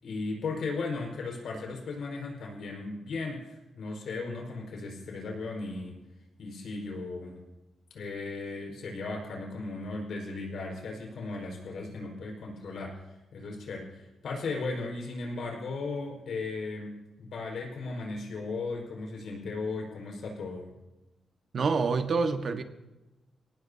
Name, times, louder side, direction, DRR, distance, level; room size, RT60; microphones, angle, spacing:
voice 1, 0.0-6.0 6.4-7.4 7.9-20.7, left 3 dB, 75° left, 0 dB, 5.0 m, -36 dB
voice 2, 21.5-22.6, right 4 dB, 50° right, 6 dB, 1.4 m, -27 dB
24.5 x 18.0 x 2.8 m, 1.0 s
wide cardioid pair, 125°, 0 cm